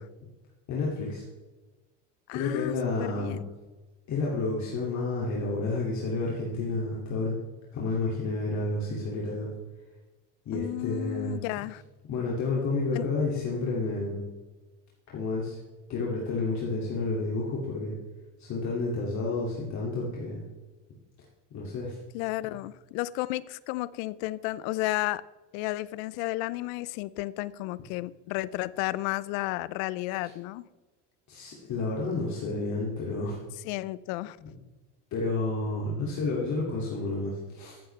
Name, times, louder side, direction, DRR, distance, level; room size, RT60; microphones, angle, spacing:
voice 1, 0.7-1.2 2.3-3.4 4.1-7.4 7.7-9.5 10.5-11.4 12.1-14.3 15.1-15.6 15.9-18.0 18.4-20.4 21.5-22.0 22.4-22.5 31.3-33.4 34.4-34.5 35.1-37.8, left 3 dB, 50° left, 2.6 m, -30 dB
voice 2, 2.3-3.4 10.5-11.8 12.9-13.1 22.1-25.2 25.5-30.7 33.6-34.4, left 18 dB, 65° left, 0.6 m, -32 dB
14.5 x 7.7 x 3.3 m
supercardioid pair, 100°, 37 cm